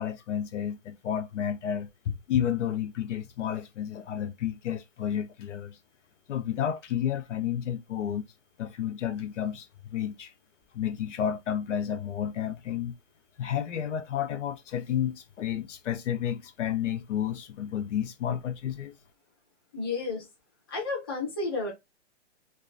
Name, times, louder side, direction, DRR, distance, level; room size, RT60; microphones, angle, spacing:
voice 1, 0.0-5.8 6.3-8.3 8.6-10.3 10.7-13.0 13.4-18.9, left 9 dB, 75° left, 0.6 m, -31 dB
voice 2, 19.7-20.3 20.7-21.7, left 3 dB, 20° left, 0.5 m, -31 dB
2.3 x 2.2 x 2.4 m
hypercardioid pair, 180°, 37 cm